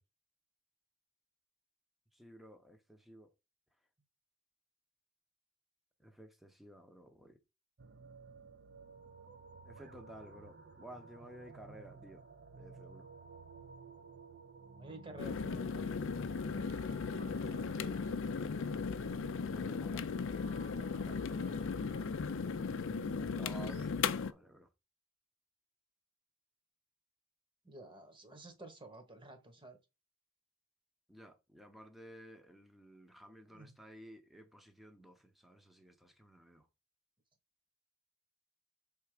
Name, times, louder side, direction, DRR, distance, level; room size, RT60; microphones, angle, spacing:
voice 1, 2.1-3.3 6.0-7.4 9.6-12.3 12.5-13.1 17.4-17.9 19.5-20.1 20.9-21.3 23.1-24.7 31.1-36.7, right 1 dB, ahead, 0.8 m, -54 dB
sound 1, 7.8-23.9, right 3 dB, 50° right, 0.8 m, -53 dB
voice 2, 14.8-15.9 21.4-21.7 27.6-29.8 33.5-33.8, right 2 dB, 25° right, 1.2 m, -52 dB
sound 2, 15.2-24.3, left 5 dB, 60° left, 0.4 m, -37 dB
6.7 x 3.5 x 5.0 m
head